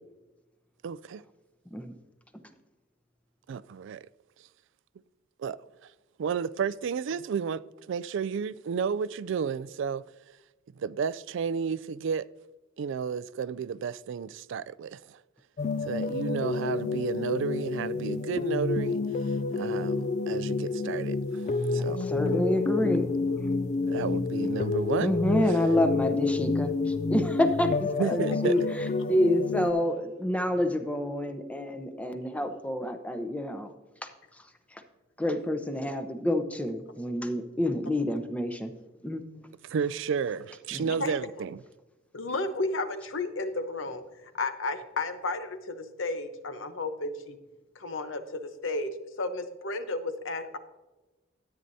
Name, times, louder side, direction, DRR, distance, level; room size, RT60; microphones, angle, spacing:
voice 1, 0.8-1.2 3.5-4.1 5.4-5.6 6.2-10.0 10.8-12.2 12.8-15.2 15.8-19.0 19.3-22.1 23.9-25.1 28.0-28.5 39.7-41.6, right 6 dB, 65° right, 0.3 m, -32 dB
sound 1, 15.6-29.7, left 3 dB, 35° left, 0.3 m, -29 dB
voice 2, 21.4-23.1 25.0-28.6 29.1-33.7 34.0-34.1 34.7-34.8 35.2-38.7 39.0-39.2 40.7-40.9, left 1 dB, 5° left, 0.7 m, -28 dB
voice 3, 40.9-41.3 42.1-44.0 44.3-47.4 47.8-48.9 49.2-50.6, left 2 dB, 70° left, 0.9 m, -33 dB
13.0 x 8.9 x 2.7 m
head